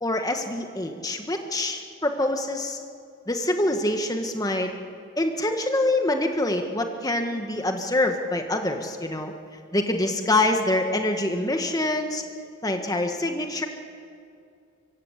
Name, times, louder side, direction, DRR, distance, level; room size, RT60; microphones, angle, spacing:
voice 1, 0.0-2.8 3.3-4.7 5.2-9.3 9.7-12.2 12.6-13.7, left 1 dB, 15° left, 5 dB, 1.6 m, -25 dB
24.5 x 24.5 x 8.3 m, 2.4 s
head